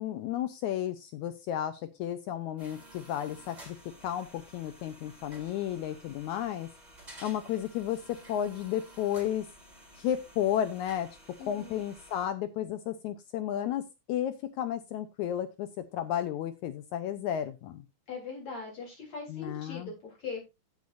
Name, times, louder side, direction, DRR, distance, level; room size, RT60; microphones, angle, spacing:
voice 1, 0.0-3.8 4.0-6.7 7.2-8.0 8.3-9.5 10.0-11.1 11.5-13.8 14.1-17.8 19.3-19.9, left 10 dB, 80° left, 9 dB, 1.7 m, -33 dB
sound 1, 2.6-12.3, right 1 dB, 10° right, 3.8 m, -53 dB
voice 2, 11.4-11.8 18.1-20.5, left 4 dB, 45° left, -1 dB, 4.8 m, -41 dB
16.0 x 6.8 x 2.6 m, 0.24 s
omnidirectional pair, 4.3 m